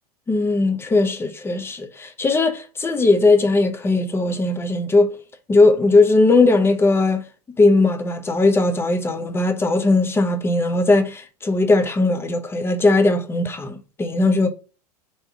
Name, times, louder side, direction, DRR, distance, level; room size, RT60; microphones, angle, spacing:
voice 1, 0.3-5.1 5.5-7.2 7.6-14.5, left 3 dB, 10° left, 0.5 m, -18 dB
3.3 x 2.7 x 4.4 m
figure-of-eight pair, 85°, 20 cm